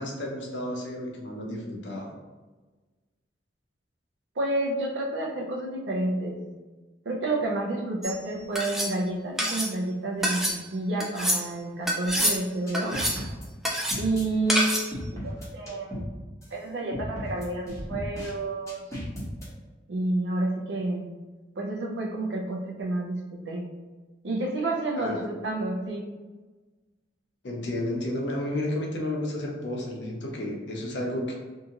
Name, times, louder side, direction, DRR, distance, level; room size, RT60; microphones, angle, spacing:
voice 1, 0.0-2.1 25.0-25.2 27.4-31.3, left 1 dB, 75° left, 0 dB, 0.6 m, -32 dB
voice 2, 4.4-6.4 7.1-10.4 10.7-13.0 14.0-16.0 16.5-18.8 19.9-21.1 21.6-23.2 23.5-23.7 24.2-26.0, right 2 dB, 75° right, 0 dB, 0.6 m, -29 dB
sound 1, 8.0-8.2 8.5-8.9 9.4-9.7 10.2-10.6 11.0-11.4 11.9-12.4 12.7-13.2 13.6-14.0 14.5-14.9, equal, ahead, 0.3 m, -26 dB
sound 2, 12.0-12.3 12.7-14.2 14.9-16.1 16.4-16.5 16.9-18.3 18.7-19.4, equal, 15° left, 0.8 m, -35 dB
2.7 x 2.4 x 2.8 m, 1.3 s
head